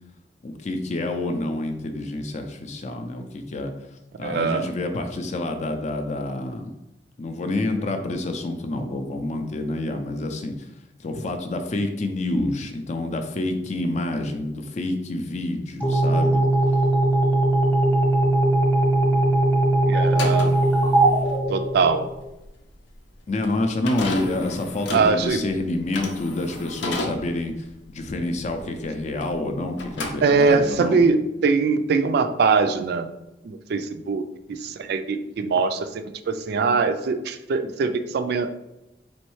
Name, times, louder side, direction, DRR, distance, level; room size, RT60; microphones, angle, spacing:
voice 1, 0.4-3.7 4.2-6.7 7.2-10.5 11.0-16.4 23.3-27.5 27.9-31.0, left 2 dB, 40° left, 6 dB, 0.4 m, -28 dB
voice 2, 4.2-4.7 14.2-14.3 19.8-20.6 21.5-22.1 24.9-25.4 30.2-33.1 33.4-38.5, right 4 dB, 60° right, 9 dB, 0.3 m, -22 dB
sound 1, 15.8-22.3, right 2 dB, 10° left, 0.9 m, -20 dB
sound 2, 20.0-29.5 29.7-30.8, left 2 dB, 85° left, 0.7 m, -34 dB
4.2 x 3.1 x 3.1 m, 0.94 s
head